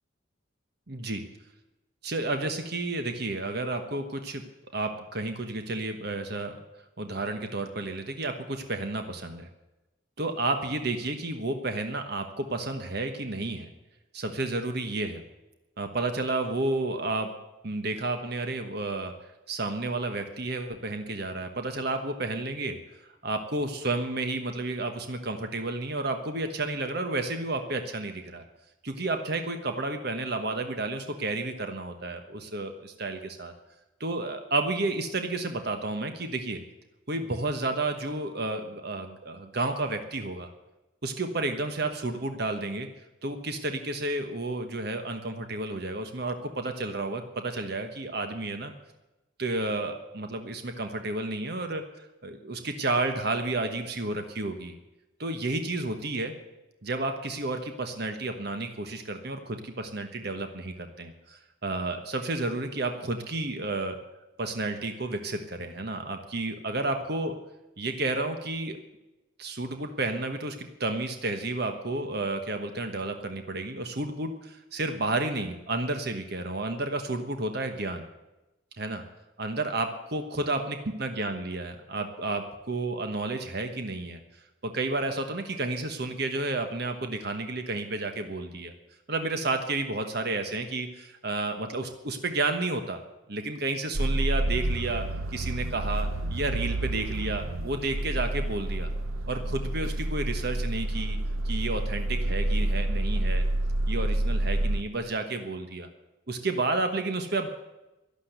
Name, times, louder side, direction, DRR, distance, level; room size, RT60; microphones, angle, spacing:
voice 1, 0.9-1.2 2.0-4.4 4.7-6.6 7.0-9.5 10.2-13.7 14.1-15.2 15.8-17.3 17.6-19.1 19.5-22.8 23.2-28.4 28.8-33.5 34.0-36.6 37.1-40.5 41.0-42.9 43.2-48.7 49.4-51.8 52.2-54.7 55.2-56.3 56.8-64.0 64.4-67.4 67.8-68.8 69.4-78.0 78.8-79.0 79.4-84.2 84.6-88.7 89.1-93.0 93.3-95.0 95.3-98.9 99.3-101.2 101.4-103.4 103.9-105.9 106.3-107.5, right 2 dB, 50° right, 7 dB, 1.2 m, -31 dB
sound 1, 93.9-104.8, right 1 dB, 85° right, 0.8 m, -28 dB
12.5 x 12.0 x 8.1 m, 1.0 s
head